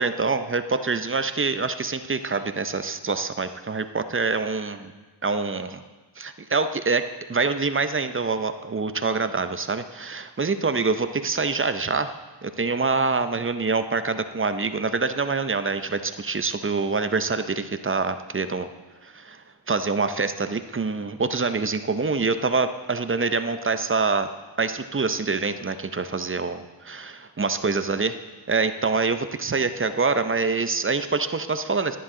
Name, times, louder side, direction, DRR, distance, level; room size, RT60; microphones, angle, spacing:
voice 1, 0.0-4.9 5.2-5.8 6.2-7.0 7.3-12.1 12.4-18.7 19.0-24.3 24.6-28.2 28.5-32.0, right 4 dB, 30° right, 10 dB, 0.6 m, -25 dB
11.0 x 10.0 x 3.7 m, 1.3 s
cardioid pair, 55°, 46 cm